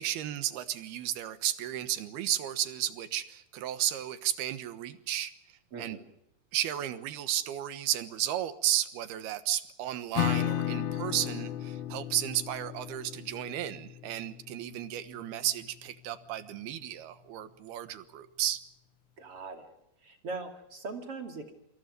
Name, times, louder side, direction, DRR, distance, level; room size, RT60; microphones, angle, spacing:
voice 1, 0.0-5.3 5.8-6.0 6.5-18.6, right 12 dB, 80° right, 12 dB, 3.2 m, -33 dB
voice 2, 5.7-6.0 19.2-19.7 20.0-21.5, right 3 dB, 40° right, 5 dB, 3.0 m, -40 dB
Acoustic guitar / Strum, 10.1-15.6, left 12 dB, 65° left, 2.0 m, -35 dB
28.0 x 25.5 x 5.3 m, 0.83 s
omnidirectional pair, 4.5 m